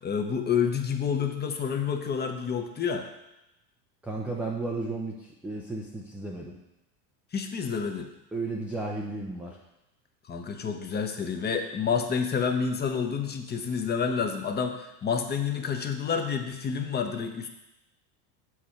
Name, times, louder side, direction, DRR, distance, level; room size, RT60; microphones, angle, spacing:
voice 1, 0.0-3.1 7.3-8.1 10.3-17.5, left 6 dB, 20° left, 5 dB, 0.7 m, -29 dB
voice 2, 4.0-6.5 8.3-9.6, right 2 dB, 5° right, -2 dB, 0.4 m, -33 dB
6.9 x 4.8 x 4.4 m, 0.92 s
hypercardioid pair, 90°, 50 cm